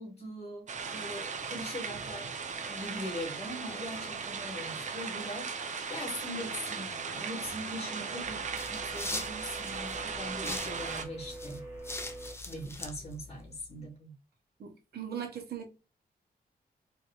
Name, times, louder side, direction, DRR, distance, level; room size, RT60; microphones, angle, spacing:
voice 1, 0.0-2.3 2.7-5.5 5.9-11.6 12.5-14.1, equal, 40° left, 1.7 m, -41 dB
sound 1, 0.7-11.1, right 5 dB, 50° right, 0.5 m, -38 dB
sound 2, 2.0-12.3, right 2 dB, 15° right, 1.6 m, -49 dB
sound 3, 8.2-13.7, left 2 dB, 15° left, 0.4 m, -42 dB
voice 2, 14.6-15.7, right 8 dB, 75° right, 0.9 m, -39 dB
4.4 x 2.6 x 2.3 m
wide cardioid pair, 130°, 16 cm